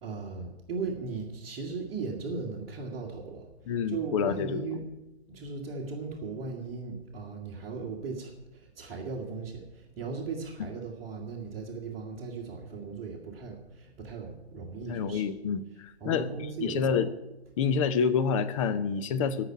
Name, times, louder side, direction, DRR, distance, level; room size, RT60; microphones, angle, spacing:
voice 1, 0.0-3.4 3.9-4.8 5.3-15.2 16.0-17.0, right 4 dB, 20° right, -4 dB, 1.7 m, -37 dB
voice 2, 3.7-4.7 14.9-16.3 16.6-17.1 17.6-19.4, left 6 dB, 30° left, 11 dB, 0.8 m, -28 dB
15.5 x 5.9 x 9.7 m, 1.0 s
figure-of-eight pair, 120°, 32 cm